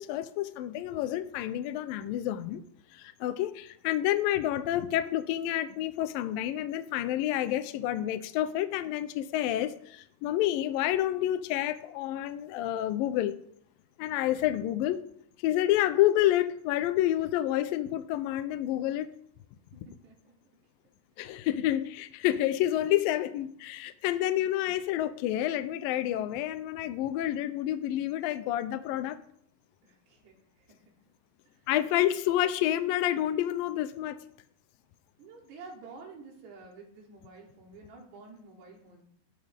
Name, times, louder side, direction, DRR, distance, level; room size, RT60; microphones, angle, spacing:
voice 1, 0.0-2.6 2.9-13.4 14.0-15.0 15.4-19.1 21.2-29.2 31.7-34.2, left 13 dB, 80° left, 11 dB, 2.2 m, -29 dB
voice 2, 19.7-20.3 21.3-21.4 24.4-24.5 29.8-31.1 31.4-31.7 35.2-39.0, right 4 dB, 80° right, -1 dB, 5.2 m, -50 dB
18.0 x 13.0 x 3.6 m, 0.67 s
omnidirectional pair, 4.7 m